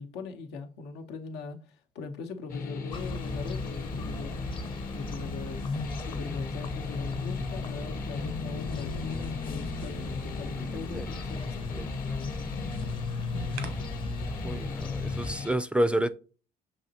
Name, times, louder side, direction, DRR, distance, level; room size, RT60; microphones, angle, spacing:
voice 1, 0.0-4.4 4.9-11.7, left 4 dB, 85° left, 0.9 m, -40 dB
sound 1, 2.5-15.6, left 5 dB, 60° left, 1.0 m, -37 dB
sound 2, 2.9-15.3, left 2 dB, 30° left, 0.6 m, -37 dB
sound 3, 7.3-9.7 12.5-13.7, right 6 dB, 90° right, 0.9 m, -47 dB
voice 2, 11.8-12.2 14.4-16.1, right 1 dB, 5° right, 0.3 m, -29 dB
6.3 x 2.9 x 2.8 m
cardioid pair, 110°, 17 cm